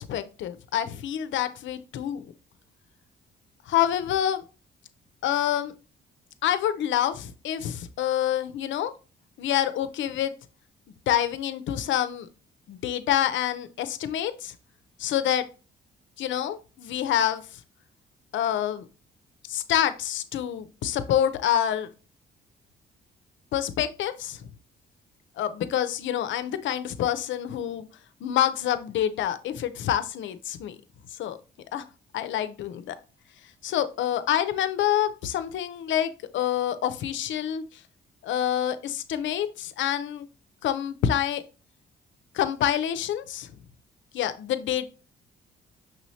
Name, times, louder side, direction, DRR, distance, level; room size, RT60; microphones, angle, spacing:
voice 1, 0.0-2.2 3.7-4.4 5.2-5.7 6.4-8.9 9.4-10.3 11.1-12.3 12.7-14.5 15.0-15.5 16.2-17.4 18.3-18.8 19.5-21.9 23.5-24.4 25.4-27.9 28.2-30.8 31.2-31.4 31.7-31.8 32.1-33.0 33.6-37.6 38.2-40.3 40.6-41.4 42.3-43.5 44.1-44.9, left 10 dB, 70° left, 12 dB, 0.5 m, -27 dB
6.1 x 3.1 x 2.7 m, 0.33 s
cardioid pair, 90°, 20 cm